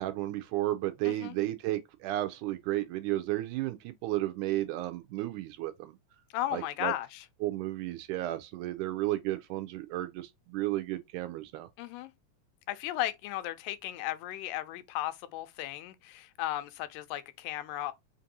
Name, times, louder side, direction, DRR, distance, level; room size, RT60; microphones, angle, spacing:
voice 1, 0.0-6.0 6.5-6.9 7.4-11.7, right 16 dB, 80° right, 1.9 m, -33 dB
voice 2, 1.0-1.4 6.3-7.3 11.8-12.1 12.7-17.9, left 14 dB, 90° left, 2.3 m, -35 dB
5.2 x 2.5 x 2.7 m
omnidirectional pair, 3.8 m